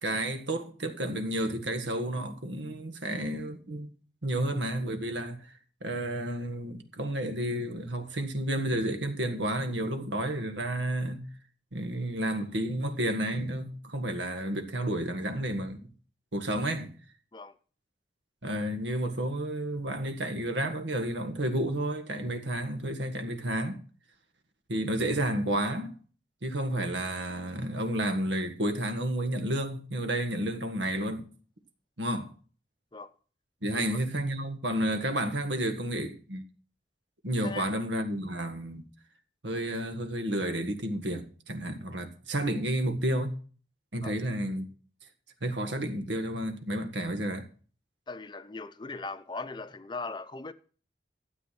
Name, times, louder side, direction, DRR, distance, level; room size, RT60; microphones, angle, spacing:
voice 1, 0.0-3.9 4.2-5.4 5.8-11.2 11.7-15.8 16.3-16.9 18.4-23.8 24.7-25.9 26.4-31.3 32.0-32.3 33.6-36.4 37.2-38.9 39.4-43.3 43.9-44.7 45.4-47.5, right 1 dB, 90° right, 1.7 m, -31 dB
voice 2, 33.7-34.0 37.4-37.7 44.0-44.2 48.1-50.5, left 3 dB, 25° left, 0.6 m, -39 dB
13.0 x 8.1 x 5.8 m
head